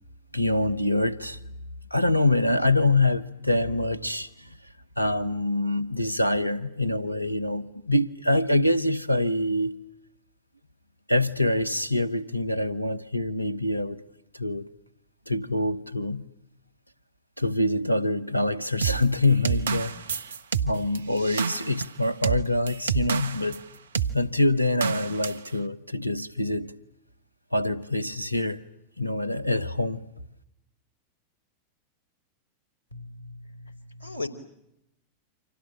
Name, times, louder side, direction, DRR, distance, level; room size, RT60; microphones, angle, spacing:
voice 1, 0.3-1.4 1.9-4.6 5.0-9.8 11.1-14.0 14.3-14.7 15.3-16.2 17.4-19.9 20.6-23.6 24.1-26.7 27.5-28.6 29.0-30.0, left 1 dB, 90° left, 1.1 m, -25 dB
sound 1, 18.8-23.6 23.9-24.2 24.8-25.5, right 6 dB, 70° right, 1.0 m, -28 dB
voice 2, 32.9-34.3, left 2 dB, 85° right, 3.3 m, -38 dB
29.0 x 26.0 x 7.4 m
figure-of-eight pair, 90°, 0 cm